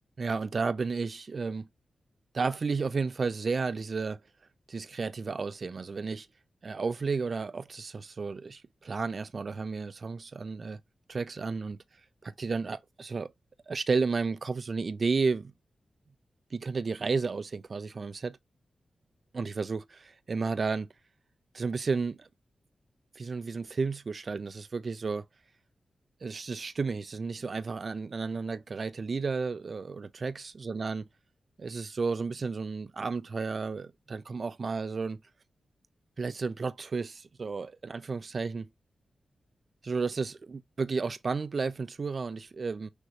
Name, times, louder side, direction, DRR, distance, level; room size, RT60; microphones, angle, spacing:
voice 1, 0.2-1.7 2.3-4.2 4.7-6.3 6.6-10.8 11.1-11.8 12.2-13.3 13.7-15.5 16.5-18.4 19.3-20.9 21.5-22.3 23.2-25.3 26.2-31.0 31.6-35.2 36.2-38.7 39.8-42.9, right 4 dB, 45° right, 0.4 m, -32 dB
6.3 x 2.6 x 3.1 m
wide cardioid pair, 110°, 0 cm